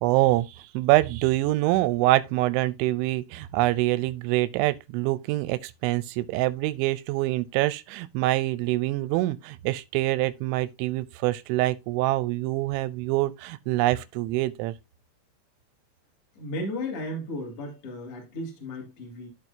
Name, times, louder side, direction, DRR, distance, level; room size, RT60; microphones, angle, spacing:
voice 1, 0.0-14.7, right 17 dB, 85° right, 3.0 m, -25 dB
voice 2, 16.4-19.3, left 1 dB, 40° left, 2.6 m, -34 dB
13.0 x 4.5 x 2.7 m
omnidirectional pair, 5.4 m